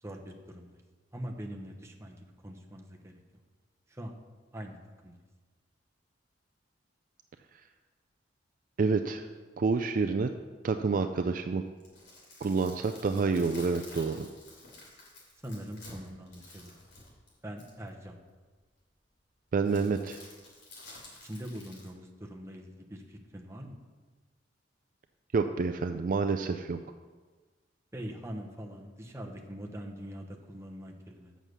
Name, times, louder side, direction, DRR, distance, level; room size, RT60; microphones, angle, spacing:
voice 1, 0.0-0.8 1.1-3.2 3.9-4.2 4.5-4.8 5.0-5.2 15.4-16.8 17.4-18.2 21.2-23.8 27.9-31.4, equal, 15° right, 1 dB, 0.9 m, -43 dB
voice 2, 8.8-9.2 9.6-10.3 10.6-11.6 12.4-14.3 19.5-20.2 25.3-26.8, right 4 dB, 50° right, 8 dB, 0.4 m, -28 dB
sound 1, 11.6-17.9 19.7-21.9, left 2 dB, 75° left, 3.1 m, -51 dB
7.3 x 6.2 x 6.7 m, 1.3 s
head